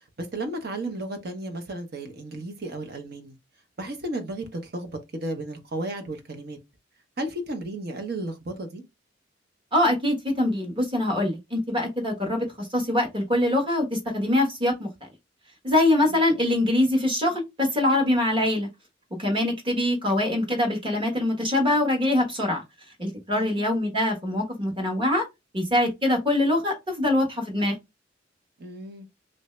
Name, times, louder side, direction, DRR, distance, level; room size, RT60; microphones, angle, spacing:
voice 1, 0.2-3.4 3.8-6.6 7.2-8.8 16.0-16.2 23.3-23.6 28.6-29.1, right 1 dB, 55° right, 0.8 m, -34 dB
voice 2, 9.7-14.9 15.6-18.7 19.2-22.6 23.0-25.2 25.5-27.8, left 1 dB, 25° right, 1.2 m, -23 dB
3.2 x 2.6 x 3.1 m
head